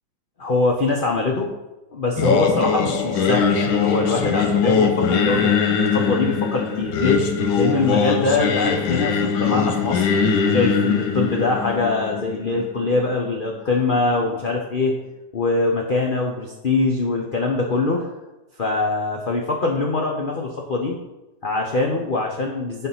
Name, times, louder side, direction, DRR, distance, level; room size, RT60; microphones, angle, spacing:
voice 1, 0.4-1.5 1.9-7.2 7.5-10.1 10.5-14.9 15.3-18.2 18.6-21.0 21.4-22.9, left 3 dB, 50° left, 0 dB, 0.6 m, -23 dB
Singing, 2.2-13.3, left 6 dB, 80° left, 1.5 m, -21 dB
9.2 x 4.2 x 5.7 m, 1.0 s
omnidirectional pair, 2.1 m